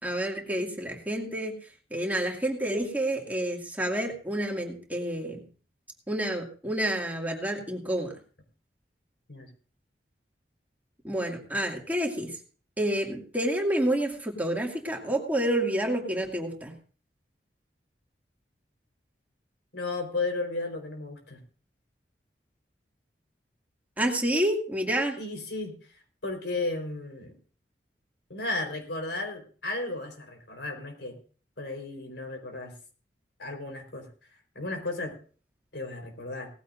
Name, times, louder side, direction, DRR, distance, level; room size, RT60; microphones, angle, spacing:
voice 1, 0.0-1.5 1.9-5.4 6.1-8.1 11.0-12.3 12.8-16.7 24.0-25.2, right 1 dB, 10° right, 0 dB, 2.3 m, -29 dB
voice 2, 19.7-21.4 25.2-25.7 26.2-27.3 28.3-31.2 31.6-32.7 33.4-34.1 34.5-35.1 35.7-36.5, left 2 dB, 90° left, 3 dB, 4.3 m, -34 dB
18.5 x 14.5 x 2.6 m, 0.40 s
head